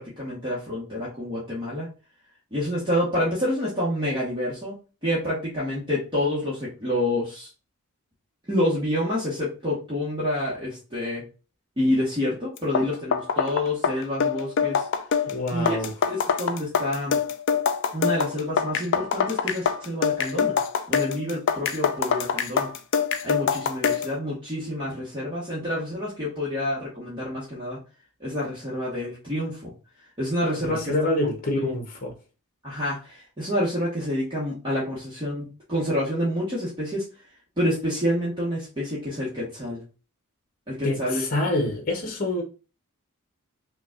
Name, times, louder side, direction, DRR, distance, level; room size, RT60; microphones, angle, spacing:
voice 1, 0.0-1.9 2.5-4.8 5.0-7.5 8.5-11.2 11.8-14.9 15.5-15.8 16.1-17.2 17.9-20.6 20.9-22.7 23.2-27.8 28.2-29.7 30.2-31.1 31.5-31.7 32.6-37.0 37.6-39.8 40.7-41.2, left 1 dB, 20° right, 1.2 m, -28 dB
sound 1, 12.6-24.1, left 6 dB, 55° left, 0.4 m, -25 dB
voice 2, 15.3-15.9 30.6-32.1 40.8-42.4, left 1 dB, 40° left, 0.8 m, -26 dB
5.6 x 2.3 x 2.3 m
head